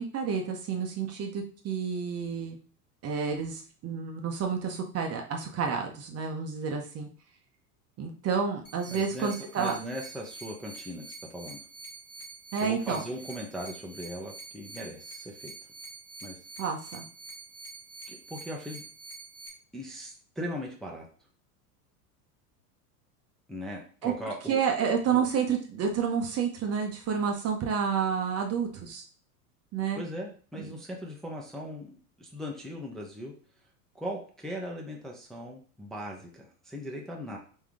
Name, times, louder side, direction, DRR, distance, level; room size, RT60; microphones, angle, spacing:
voice 1, 0.0-2.6 3.0-7.1 8.0-9.7 12.5-13.0 16.6-17.0 24.0-24.1 24.5-29.0 29.7-30.0 30.6-30.7, right 6 dB, 30° right, 2 dB, 0.8 m, -30 dB
sound 1, 8.6-19.5, right 3 dB, 30° left, 1.6 m, -46 dB
voice 2, 8.9-9.3 9.6-11.6 12.6-15.5 16.2-16.4 18.1-18.8 19.7-21.1 23.5-24.6 25.1-25.2 29.9-33.3 33.9-37.4, equal, ahead, -2 dB, 0.7 m, -39 dB
3.6 x 3.1 x 3.5 m, 0.42 s
hypercardioid pair, 90°, 46 cm